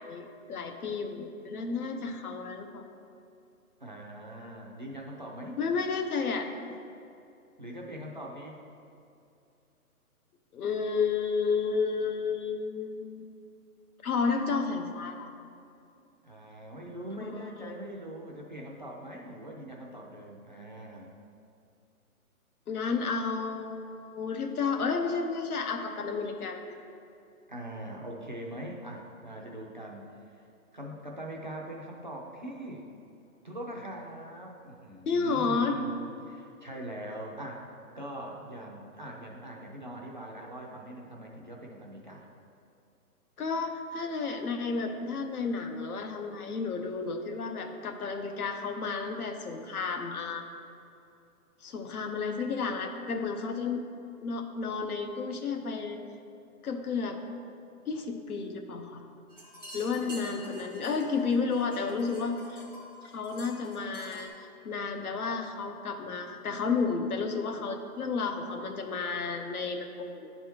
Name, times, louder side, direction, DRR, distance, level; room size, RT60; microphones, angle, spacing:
voice 1, 0.0-2.8 5.6-6.5 10.5-13.2 14.0-15.3 17.2-17.4 22.7-26.7 35.1-35.8 43.4-50.4 51.6-53.8 54.2-56.0 56.6-57.2 57.9-59.0 59.7-62.6 63.1-64.3 64.6-70.3, left 4 dB, 75° left, 5 dB, 0.9 m, -32 dB
voice 2, 3.8-5.6 7.6-8.6 16.2-21.1 27.5-32.9 33.4-36.0 36.3-37.7 37.9-42.3, right 1 dB, 35° right, -2 dB, 0.4 m, -42 dB
sound 1, 59.3-64.3, equal, 15° left, 0.5 m, -48 dB
10.0 x 3.4 x 4.4 m, 2.6 s
hypercardioid pair, 165°, 44 cm